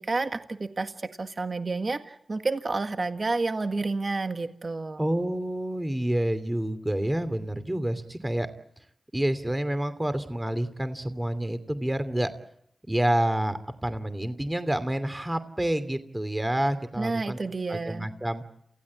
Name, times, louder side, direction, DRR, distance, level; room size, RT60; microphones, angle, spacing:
voice 1, 0.0-5.0 17.0-18.1, right 3 dB, 55° right, 8 dB, 1.7 m, -30 dB
voice 2, 5.0-8.5 9.1-12.3 12.9-17.4 17.7-18.4, right 1 dB, 20° right, 11 dB, 2.8 m, -28 dB
28.0 x 16.5 x 8.7 m, 0.72 s
cardioid pair, 40°, 0 cm